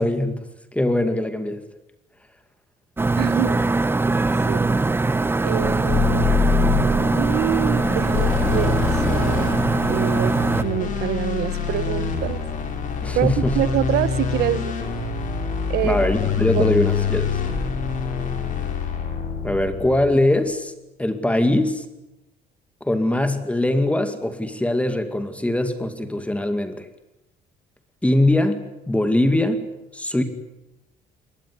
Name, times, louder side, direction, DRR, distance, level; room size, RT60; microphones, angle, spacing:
voice 1, 0.0-1.6 13.0-13.6 15.8-17.4 19.4-20.7 21.0-21.9 22.8-26.9 28.0-29.7 29.9-30.2, left 1 dB, 5° left, 8 dB, 2.4 m, -22 dB
sound 1, 3.0-10.6, right 3 dB, 15° right, 0.9 m, -21 dB
voice 2, 3.2-3.6 4.5-4.7 5.4-12.4 13.1-14.7 15.7-16.1 16.5-16.6, right 13 dB, 75° right, 16 dB, 1.3 m, -26 dB
sound 2, 5.6-20.1, left 6 dB, 50° left, 5.4 m, -25 dB
22.5 x 20.0 x 9.8 m, 0.92 s
cardioid pair, 110°, 17 cm